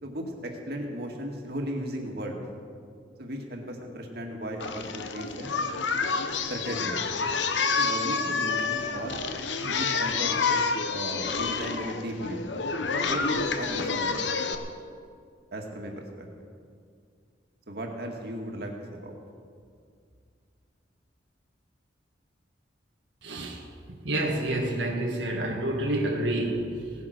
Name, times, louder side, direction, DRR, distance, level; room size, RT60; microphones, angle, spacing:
voice 1, 0.0-2.4 3.2-5.5 6.5-7.0 7.8-9.2 9.6-10.3 10.9-12.4 12.9-14.4 15.5-16.3 17.7-18.7 19.0-19.2, right 1 dB, 60° right, 1 dB, 2.0 m, -36 dB
Singing, 4.6-14.5, left 4 dB, 85° left, 1.0 m, -28 dB
voice 2, 23.2-23.6 24.0-26.9, right 1 dB, 90° right, 0 dB, 1.6 m, -28 dB
17.5 x 9.7 x 6.5 m, 2.2 s
head